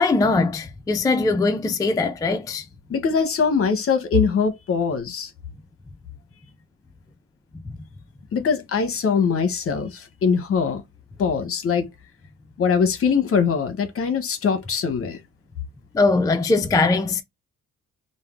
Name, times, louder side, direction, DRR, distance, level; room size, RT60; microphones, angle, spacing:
voice 1, 0.0-2.6 7.7-7.8 15.9-17.2, left 3 dB, 10° left, 0.3 m, -21 dB
voice 2, 2.9-5.3 8.3-10.8 11.2-11.9 12.6-15.2, left 6 dB, 50° left, 0.8 m, -22 dB
3.2 x 2.1 x 2.4 m
cardioid pair, 90°, 30 cm